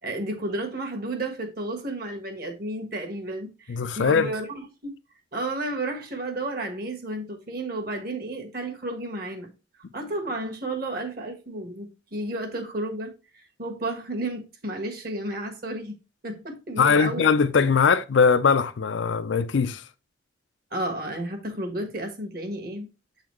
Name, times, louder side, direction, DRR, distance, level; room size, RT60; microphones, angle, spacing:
voice 1, 0.0-4.9 5.3-9.5 9.9-16.0 16.2-17.2 20.7-22.9, right 2 dB, 50° right, 1.4 m, -32 dB
voice 2, 3.7-4.3 16.8-19.8, left 5 dB, 75° left, 0.5 m, -21 dB
7.7 x 4.0 x 3.1 m
head